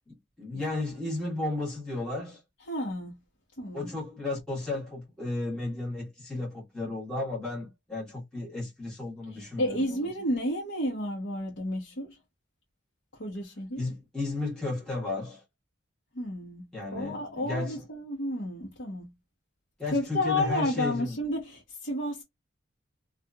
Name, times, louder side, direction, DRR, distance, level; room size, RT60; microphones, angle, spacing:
voice 1, 0.4-2.4 3.7-9.8 13.8-15.4 16.7-17.8 19.8-21.2, left 2 dB, 5° left, 1.2 m, -33 dB
voice 2, 2.7-3.2 3.6-3.9 9.3-12.2 13.1-13.8 16.1-16.6 16.9-19.1 19.9-22.2, left 1 dB, 70° left, 0.9 m, -31 dB
2.8 x 2.4 x 2.3 m
head